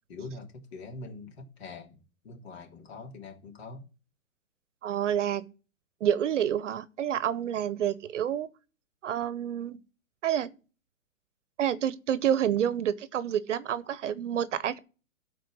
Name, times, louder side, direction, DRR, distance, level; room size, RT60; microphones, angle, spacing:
voice 1, 0.1-3.9, left 3 dB, 50° left, 3.2 m, -44 dB
voice 2, 4.8-5.5 6.0-8.5 9.0-9.8 10.2-10.5 11.6-14.8, right 9 dB, 60° right, 0.9 m, -28 dB
13.0 x 4.5 x 6.2 m
hypercardioid pair, 160°, 41 cm